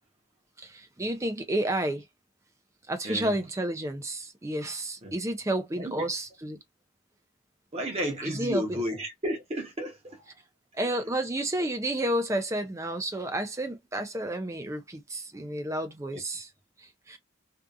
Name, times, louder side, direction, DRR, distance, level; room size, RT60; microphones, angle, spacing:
voice 1, 0.6-2.0 2.9-6.6 8.2-8.8 10.7-16.5 16.8-17.2, right 1 dB, 15° right, 0.4 m, -31 dB
voice 2, 5.8-6.1 7.7-10.3 10.8-10.9 16.1-16.2, equal, 30° right, 0.8 m, -33 dB
2.6 x 2.4 x 2.3 m
head